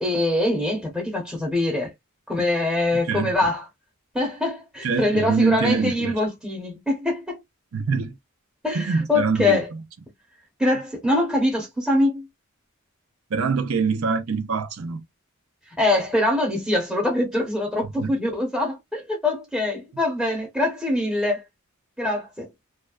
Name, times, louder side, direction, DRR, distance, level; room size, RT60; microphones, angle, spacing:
voice 1, 0.0-1.9 2.3-3.6 4.1-7.4 8.6-9.7 10.6-12.3 15.8-21.4 22.0-22.5, left 2 dB, 5° right, 0.8 m, -23 dB
voice 2, 4.8-6.1 7.7-8.2 8.7-9.8 13.3-15.0 17.8-18.1, right 5 dB, 75° right, 0.6 m, -24 dB
2.3 x 2.3 x 2.3 m
head